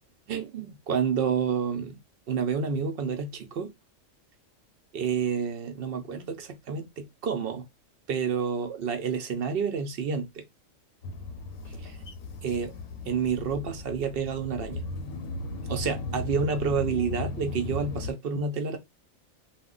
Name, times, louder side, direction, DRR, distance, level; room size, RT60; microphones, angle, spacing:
voice 1, 0.3-2.0 2.3-3.7 4.9-7.7 8.1-10.4 11.7-12.0 12.4-12.7 13.0-14.8 15.7-18.8, right 6 dB, 65° right, 0.6 m, -29 dB
sound 1, 11.0-18.1, left 2 dB, 85° left, 1.0 m, -36 dB
2.2 x 2.1 x 3.6 m
omnidirectional pair, 1.4 m